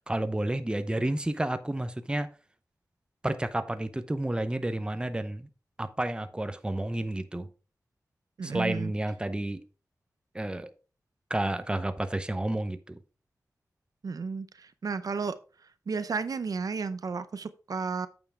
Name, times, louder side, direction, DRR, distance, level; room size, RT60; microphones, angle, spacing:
voice 1, 0.1-2.3 3.2-5.5 5.8-7.5 8.4-9.6 10.3-10.7 11.3-13.0, right 1 dB, 15° right, 0.8 m, -30 dB
voice 2, 8.4-8.9 14.0-15.3 15.9-18.1, right 5 dB, 70° right, 0.6 m, -32 dB
8.8 x 7.1 x 3.5 m
wide cardioid pair, 85°, 6 cm